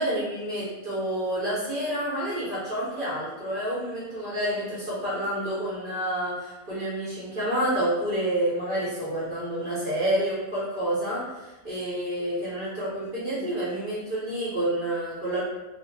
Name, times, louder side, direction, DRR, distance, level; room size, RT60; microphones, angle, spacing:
voice 1, 0.0-15.4, right 1 dB, 45° right, -9 dB, 0.7 m, -29 dB
2.5 x 2.0 x 3.1 m, 1.1 s
omnidirectional pair, 1.6 m